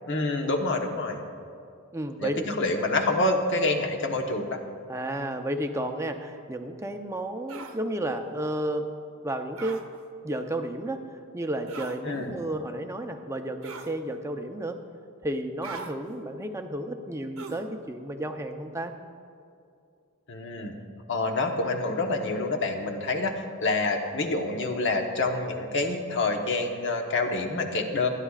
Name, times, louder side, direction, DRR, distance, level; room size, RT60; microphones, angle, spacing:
voice 1, 0.1-1.2 2.2-4.6 12.0-12.4 20.3-20.8 21.1-28.1, left 2 dB, 55° left, 2 dB, 1.2 m, -27 dB
voice 2, 1.9-2.4 4.9-8.9 9.2-9.8 10.2-11.0 11.3-14.8 15.2-18.9, right 1 dB, 15° right, 5 dB, 0.6 m, -32 dB
sound 1, 7.5-7.8 9.6-9.8 11.7-12.0 13.6-14.0 15.6-15.9 17.4-17.7, right 4 dB, 70° right, 0.9 m, -40 dB
28.0 x 10.0 x 2.4 m, 2.5 s
head